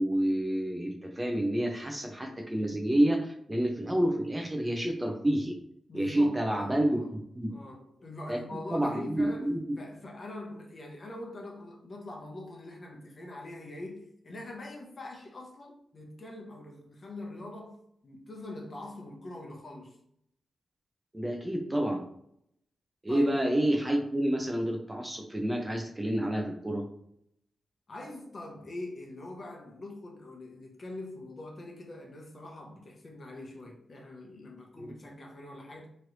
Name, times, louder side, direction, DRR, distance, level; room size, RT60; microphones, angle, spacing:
voice 1, 0.0-5.5 5.9-7.5 8.3-8.4 8.7-9.6 21.1-22.0 23.0-26.9 34.8-34.9, right 1 dB, 15° right, 0.4 m, -29 dB
voice 2, 5.9-7.1 7.5-17.8 18.0-20.0 23.1-23.3 27.9-35.9, left 2 dB, 40° left, 0.8 m, -43 dB
3.1 x 2.5 x 3.0 m
wide cardioid pair, 115°, 0 cm